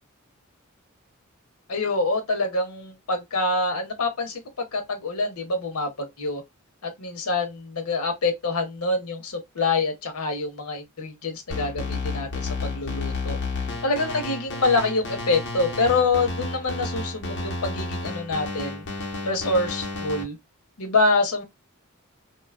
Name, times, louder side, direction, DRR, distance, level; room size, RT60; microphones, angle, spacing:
voice 1, 1.7-4.4 4.7-6.4 6.8-13.4 13.8-18.8 19.2-20.4 20.8-21.4, left 3 dB, 85° left, 0.8 m, -26 dB
sound 1, 11.5-20.2, left 3 dB, 55° left, 0.9 m, -31 dB
2.7 x 2.3 x 2.3 m
head